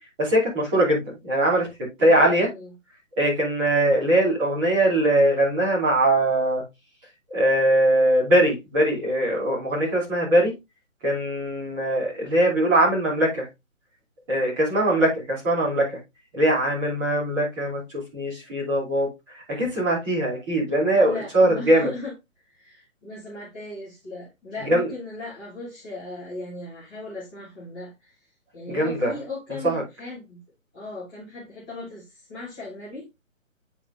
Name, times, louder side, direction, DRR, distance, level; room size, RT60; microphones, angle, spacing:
voice 1, 0.2-1.7 2.0-2.5 3.2-6.6 7.3-10.5 11.0-13.5 14.3-16.0 16.3-21.9 24.6-24.9 28.7-29.2 29.5-29.8, right 1 dB, 15° right, 2.8 m, -21 dB
voice 2, 2.0-2.7 20.9-22.1 22.6-28.1 28.5-30.4 30.7-33.1, left 2 dB, 5° left, 0.8 m, -38 dB
8.6 x 5.0 x 2.5 m
hypercardioid pair, 170°, 41 cm